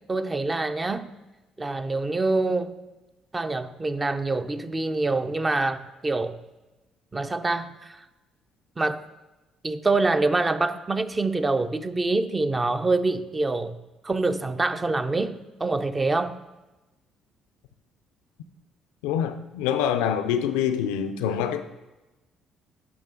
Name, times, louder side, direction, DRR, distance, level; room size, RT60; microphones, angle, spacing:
voice 1, 0.1-1.1 1.6-2.7 3.3-6.4 7.1-8.0 8.8-9.0 9.6-13.8 14.0-16.4, right 3 dB, 25° right, 0.6 m, -25 dB
voice 2, 19.0-21.6, left 9 dB, 90° left, 0.4 m, -25 dB
10.5 x 5.4 x 3.8 m
supercardioid pair, 70°, 0 cm